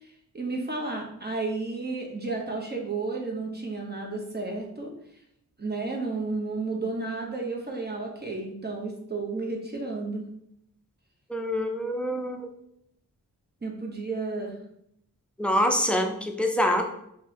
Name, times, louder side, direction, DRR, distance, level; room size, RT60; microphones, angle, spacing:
voice 1, 0.3-4.9 5.6-10.3 13.6-14.6, right 3 dB, 30° right, 0 dB, 0.8 m, -32 dB
voice 2, 11.3-12.5 15.4-16.8, equal, 5° left, 2 dB, 0.5 m, -25 dB
3.6 x 2.7 x 3.0 m, 0.74 s
cardioid pair, 70°, 35 cm